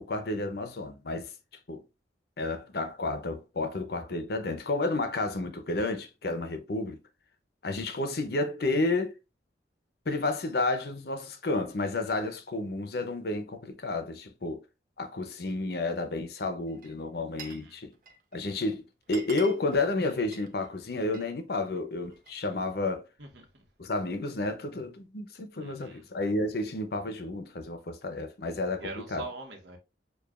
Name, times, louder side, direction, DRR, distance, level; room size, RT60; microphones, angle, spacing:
voice 1, 0.0-1.3 1.7-1.8 2.4-7.0 7.6-9.2 10.1-14.6 15.0-17.9 18.3-18.8 19.1-23.0 23.8-29.3, left 2 dB, 60° left, 0.7 m, -31 dB
Glass, 16.7-17.7 17.9-18.4 18.7-18.8 19.0-21.3 21.7-22.4, right 5 dB, 50° right, 0.8 m, -47 dB
voice 2, 17.4-17.8 23.2-23.6 25.6-26.0 28.8-29.8, right 2 dB, 75° right, 1.3 m, -43 dB
6.8 x 2.4 x 2.4 m
head